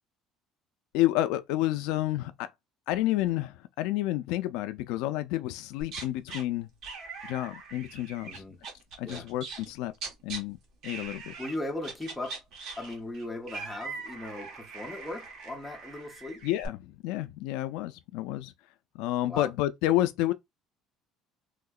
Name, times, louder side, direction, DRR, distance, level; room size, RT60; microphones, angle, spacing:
voice 1, 0.9-2.5 2.9-6.7 7.2-8.4 9.0-9.9 10.2-10.6 10.8-11.3 16.4-18.5 18.9-20.3, left 15 dB, 80° left, 0.3 m, -30 dB
sound 1, 5.8-6.4 6.8-9.7 9.9-10.4 10.8-11.6 11.8-16.7, right 4 dB, 55° right, 1.0 m, -42 dB
voice 2, 8.2-8.6 9.0-9.3 11.4-12.4 12.8-16.4 19.3-19.5, left 2 dB, 5° left, 0.7 m, -38 dB
3.5 x 2.8 x 2.3 m
cardioid pair, 165°, 0 cm